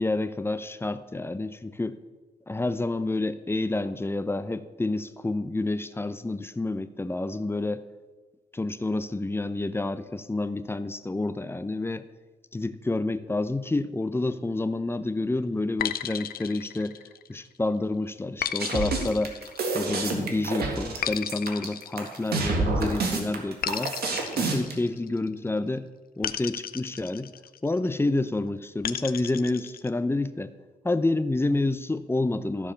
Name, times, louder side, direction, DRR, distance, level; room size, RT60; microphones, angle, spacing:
voice 1, 0.0-2.0 2.5-7.8 8.5-12.0 12.5-16.9 17.3-19.4 19.7-23.9 24.3-25.9 26.2-27.3 27.6-30.5 30.8-32.7, left 2 dB, 15° left, 12 dB, 0.6 m, -29 dB
sound 1, 15.8-17.5 18.4-20.1 21.0-22.7 23.6-25.4 26.2-27.8 28.8-29.9, left 9 dB, 70° left, 0.5 m, -34 dB
sound 2, 18.6-24.7, right 3 dB, 80° right, 1.9 m, -28 dB
14.0 x 4.8 x 6.8 m, 1.3 s
cardioid pair, 85°, 16 cm